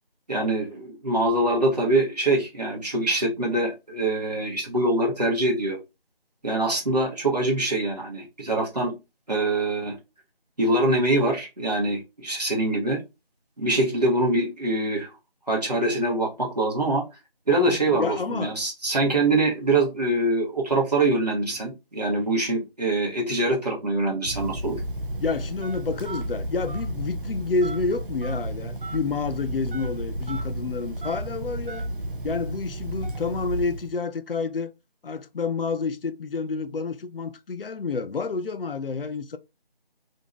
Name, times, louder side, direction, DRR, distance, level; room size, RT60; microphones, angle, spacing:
voice 1, 0.3-5.8 6.4-8.9 9.3-10.0 10.6-13.0 13.6-15.1 15.5-17.0 17.5-24.8, right 2 dB, 45° right, 0.9 m, -24 dB
voice 2, 17.7-18.5 25.2-31.8 32.2-34.7 35.0-39.4, left 4 dB, 70° left, 0.4 m, -29 dB
Telephone, 24.2-33.9, right 1 dB, 60° right, 0.5 m, -32 dB
2.6 x 2.2 x 3.0 m
figure-of-eight pair, 175°, 30 cm